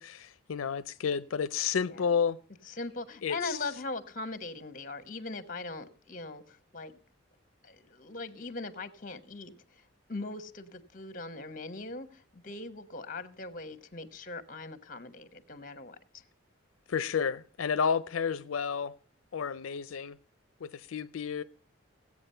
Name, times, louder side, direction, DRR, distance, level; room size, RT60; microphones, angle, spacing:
voice 1, 0.0-2.4 3.2-3.6 16.9-18.9 19.3-20.2 20.6-21.4, left 6 dB, 90° left, 0.5 m, -31 dB
voice 2, 2.7-6.9 7.6-9.8 10.1-16.0, left 3 dB, 40° left, 1.1 m, -40 dB
16.0 x 8.4 x 5.6 m
head